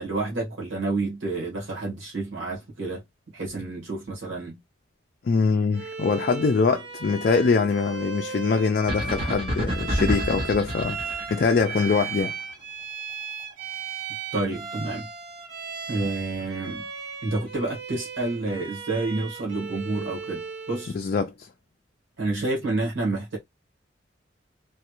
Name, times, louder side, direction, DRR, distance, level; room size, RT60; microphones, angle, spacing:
voice 1, 0.0-3.0 3.3-4.6 14.3-15.1 15.9-16.9 17.2-20.9 22.2-23.4, right 2 dB, 85° right, 1.5 m, -29 dB
voice 2, 5.2-12.3 20.9-21.5, left 4 dB, 50° left, 0.3 m, -23 dB
Bowed string instrument, 5.7-21.0, right 5 dB, 65° right, 1.4 m, -36 dB
sound 1, 8.9-12.3, equal, 30° right, 0.8 m, -29 dB
3.2 x 2.4 x 2.9 m
head